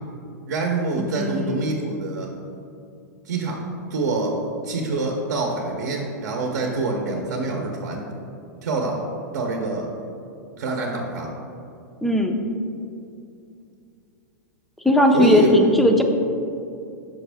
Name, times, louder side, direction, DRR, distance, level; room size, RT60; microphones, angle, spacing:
voice 1, 0.5-2.3 3.3-3.6 3.9-4.4 4.6-8.0 8.6-9.0 9.3-9.9 10.6-11.3 15.1-15.7, right 3 dB, 75° right, 0 dB, 0.7 m, -25 dB
voice 2, 1.0-1.6 12.0-12.4 14.8-16.0, left 1 dB, ahead, 3 dB, 0.4 m, -18 dB
5.4 x 5.1 x 3.4 m, 2.6 s
hypercardioid pair, 140°, 10 cm